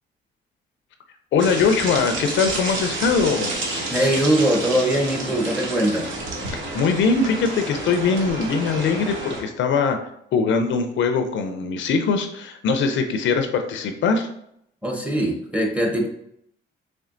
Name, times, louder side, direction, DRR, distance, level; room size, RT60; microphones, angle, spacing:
voice 1, 1.3-3.5 6.5-10.0 10.3-14.3, left 5 dB, 70° left, 7 dB, 0.5 m, -21 dB
sound 1, 1.4-9.4, right 2 dB, 75° right, 0.9 m, -29 dB
voice 2, 3.9-6.1 14.8-16.1, right 1 dB, 5° right, 1 dB, 0.9 m, -21 dB
4.3 x 3.3 x 2.5 m, 0.73 s
cardioid pair, 90°, 20 cm